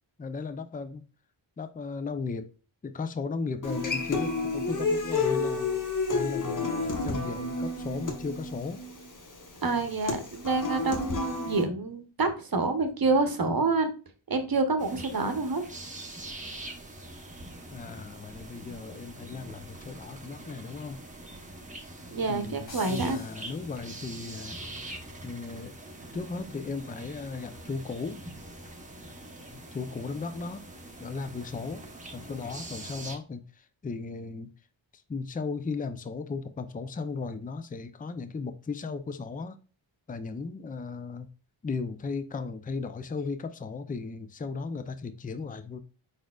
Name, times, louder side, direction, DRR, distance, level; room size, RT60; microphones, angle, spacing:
voice 1, 0.2-1.0 1.6-2.5 2.8-5.7 6.1-8.8 17.7-21.0 22.3-24.6 25.2-25.7 26.1-28.2 29.7-30.7 31.0-31.9 32.1-34.5 35.1-39.6 40.1-41.3 41.6-45.8, left 4 dB, 20° left, 0.4 m, -36 dB
Human voice / Acoustic guitar, 3.6-11.6, left 3 dB, 40° left, 0.9 m, -30 dB
voice 2, 9.6-13.9 14.3-15.6 22.1-23.2, right 3 dB, 45° right, 0.8 m, -27 dB
sound 1, 14.8-33.2, right 1 dB, 15° right, 0.8 m, -44 dB
sound 2, 22.7-24.3, left 2 dB, 85° left, 1.4 m, -47 dB
4.9 x 4.2 x 2.3 m
wide cardioid pair, 95°, 48 cm